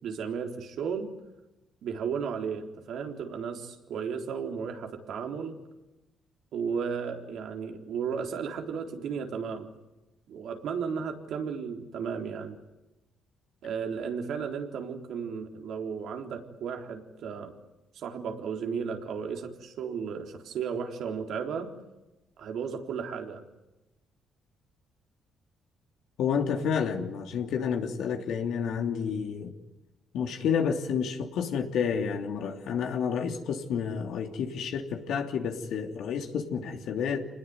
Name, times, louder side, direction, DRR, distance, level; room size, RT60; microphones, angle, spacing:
voice 1, 0.0-1.1 1.8-5.6 6.5-9.7 10.3-12.6 13.6-17.5 17.9-21.7 22.4-23.4, right 6 dB, 75° right, 3 dB, 3.8 m, -34 dB
voice 2, 26.2-29.5 30.1-37.2, left 7 dB, 80° left, 3 dB, 2.9 m, -30 dB
27.0 x 20.0 x 9.6 m, 1.0 s
cardioid pair, 90°, 0 cm